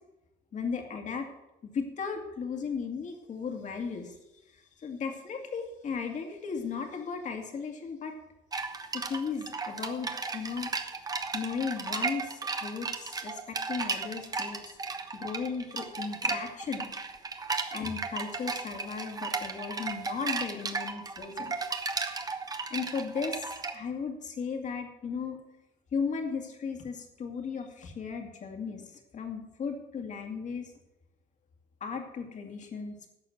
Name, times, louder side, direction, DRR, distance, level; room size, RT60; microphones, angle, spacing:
voice 1, 0.5-1.3 1.6-4.1 4.5-8.1 8.9-10.7 11.3-14.8 15.1-16.9 17.7-21.5 22.7-25.4 25.9-30.7 31.8-33.1, left 5 dB, 45° left, 4 dB, 2.3 m, -36 dB
sound 1, 8.5-23.7, right 4 dB, 20° right, 1.1 m, -35 dB
11.5 x 6.4 x 7.7 m, 0.97 s
cardioid pair, 110°, 17 cm